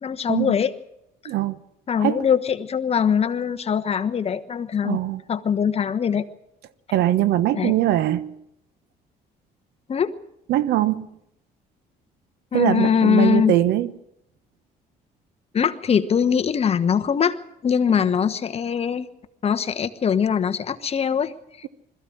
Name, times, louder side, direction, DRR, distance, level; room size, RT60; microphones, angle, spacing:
voice 1, 0.0-0.7 1.2-1.3 1.9-5.0 5.3-6.3 7.5-7.7 9.9-10.1 12.5-13.5 15.5-19.1 19.4-21.7, left 7 dB, 35° left, 1.2 m, -22 dB
voice 2, 1.2-1.6 2.0-2.3 4.8-5.2 6.9-8.4 10.5-11.1 12.5-13.9, right 13 dB, 75° right, 1.1 m, -21 dB
21.5 x 14.5 x 8.7 m
cardioid pair, 110°, 17 cm